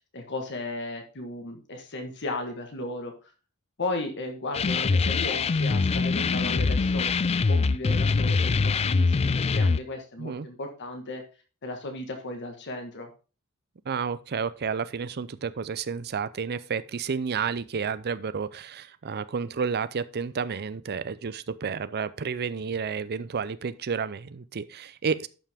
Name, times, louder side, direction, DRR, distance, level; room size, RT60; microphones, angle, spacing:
voice 1, 0.1-3.3 3.8-11.2 11.6-13.1, left 2 dB, 55° left, 1.5 m, -35 dB
sound 1, 4.5-9.8, left 4 dB, 30° left, 0.3 m, -23 dB
voice 2, 13.9-25.3, right 6 dB, 45° right, 0.5 m, -31 dB
11.5 x 5.8 x 3.5 m
head